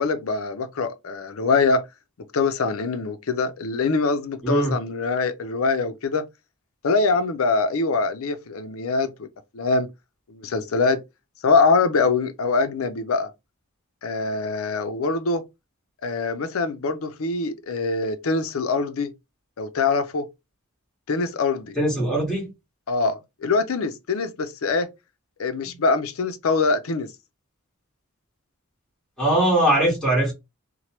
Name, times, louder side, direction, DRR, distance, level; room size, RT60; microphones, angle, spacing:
voice 1, 0.0-1.8 2.3-6.3 6.8-9.3 9.5-9.9 10.3-11.0 11.4-13.3 14.0-15.4 16.0-19.1 19.6-20.3 21.1-21.7 22.9-24.9 25.4-27.1, left 4 dB, 70° left, 0.5 m, -23 dB
voice 2, 4.4-4.7 21.7-22.5 29.2-30.3, right 1 dB, 5° left, 1.5 m, -21 dB
3.0 x 2.1 x 2.9 m
head